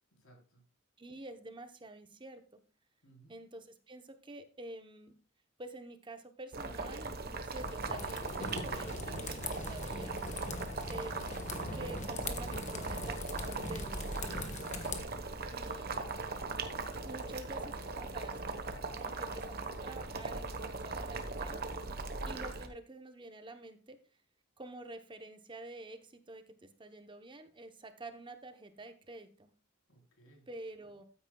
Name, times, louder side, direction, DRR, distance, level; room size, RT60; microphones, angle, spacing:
voice 1, 0.2-0.6 3.0-3.4 21.8-22.1 29.9-30.5, right 2 dB, 90° left, 1 dB, 3.7 m, -61 dB
voice 2, 1.0-2.4 3.3-5.1 5.6-10.2 10.9-14.7 15.5-16.3 17.0-18.4 18.7-21.6 22.2-24.0 24.6-29.5 30.5-31.0, right 2 dB, 25° right, 8 dB, 0.9 m, -49 dB
Boiling, 6.5-22.7, right 3 dB, 50° right, 1.1 m, -39 dB
sound 1, 7.6-15.0, left 2 dB, 35° left, 1.2 m, -42 dB
13.0 x 9.4 x 2.3 m, 0.36 s
head